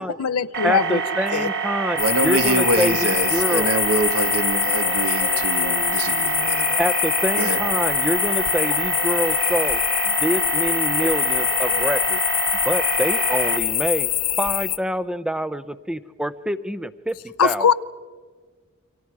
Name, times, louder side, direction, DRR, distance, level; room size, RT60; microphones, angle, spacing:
voice 1, 0.0-1.0 1.3-1.5 17.4-17.7, left 6 dB, 75° left, 16 dB, 0.6 m, -20 dB
sound 1, 0.5-13.6, right 6 dB, 50° right, 1.4 m, -27 dB
voice 2, 0.6-3.7 6.8-9.8 10.1-12.2 12.6-14.1 14.4-17.7, equal, 5° right, 15 dB, 0.6 m, -26 dB
sound 2, 2.0-14.8, left 13 dB, 40° left, 0.7 m, -24 dB
voice 3, 2.0-6.8 7.4-7.6, right 3 dB, 80° right, 8 dB, 1.6 m, -25 dB
29.0 x 24.5 x 4.8 m, 1.5 s
head